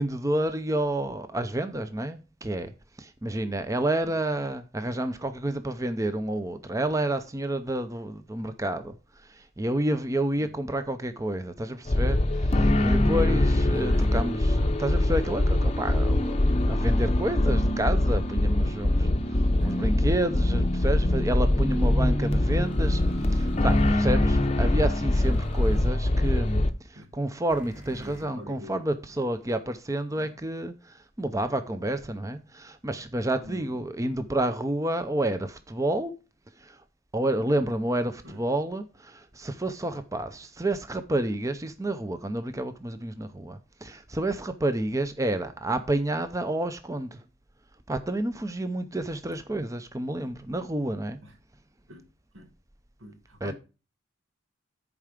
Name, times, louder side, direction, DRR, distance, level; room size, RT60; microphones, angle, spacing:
voice 1, 0.0-2.7 3.0-23.0 23.3-36.1 36.6-36.8 37.1-47.2 47.9-51.2 53.4-53.5, right 1 dB, 15° right, 0.5 m, -30 dB
sound 1, 11.9-26.7, left 1 dB, 30° left, 0.7 m, -23 dB
sound 2, 22.6-23.9 25.2-25.8 27.5-28.2, equal, 40° right, 4.6 m, -46 dB
voice 2, 27.9-28.8 30.1-30.3 33.4-33.7 38.2-38.4 51.2-51.3 51.9-52.0 52.3-52.5 53.0-53.5, equal, 80° right, 1.8 m, -44 dB
11.0 x 4.8 x 5.0 m
head